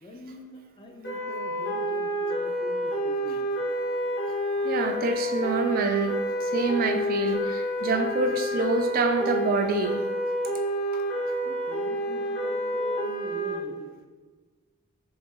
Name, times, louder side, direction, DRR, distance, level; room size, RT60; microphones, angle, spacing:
voice 1, 0.0-3.4 11.4-13.9, left 2 dB, 25° left, 2 dB, 0.4 m, -43 dB
sound 1, 1.0-13.5, equal, 50° left, 1.2 m, -29 dB
voice 2, 4.6-10.0 10.9-11.0, right 3 dB, 40° right, 5 dB, 0.3 m, -26 dB
3.9 x 3.0 x 3.7 m, 1.3 s
head